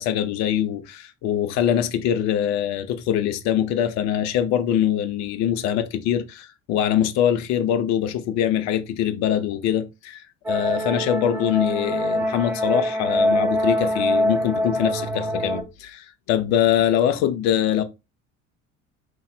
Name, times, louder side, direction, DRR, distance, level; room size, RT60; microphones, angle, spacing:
voice 1, 0.0-17.8, left 10 dB, 45° left, 0.6 m, -23 dB
sound 1, 10.4-15.6, equal, 5° right, 0.3 m, -24 dB
2.9 x 2.3 x 3.4 m
figure-of-eight pair, 65°, 40 cm